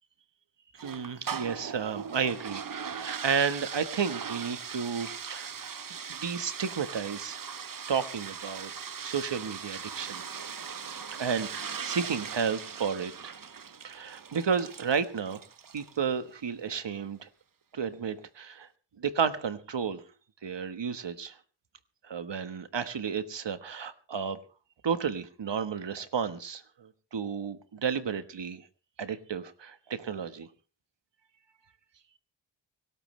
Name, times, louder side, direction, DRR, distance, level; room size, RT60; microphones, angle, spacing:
voice 1, 0.7-5.5 6.1-7.4 7.9-8.7 9.0-10.2 11.1-13.4 13.8-15.4 15.7-17.3 17.7-18.7 19.0-20.0 20.4-21.4 22.0-24.4 24.8-28.7 29.0-30.5, right 6 dB, 75° right, 11 dB, 1.4 m, -32 dB
sound 1, 0.8-16.0, right 6 dB, 50° right, 0.9 m, -40 dB
24.5 x 13.0 x 3.3 m, 0.36 s
cardioid pair, 60°, 44 cm